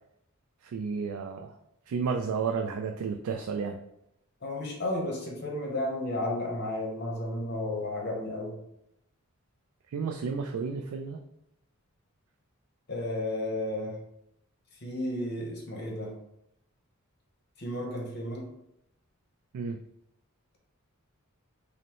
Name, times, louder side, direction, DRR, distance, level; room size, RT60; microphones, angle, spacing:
voice 1, 0.6-1.6 1.9-3.8 9.9-11.2 19.5-19.8, right 5 dB, 75° right, 3 dB, 0.3 m, -32 dB
voice 2, 4.4-8.5 12.9-14.0 14.7-16.1 17.6-18.5, left 1 dB, 50° left, -1 dB, 0.9 m, -33 dB
5.2 x 2.1 x 2.9 m, 0.79 s
head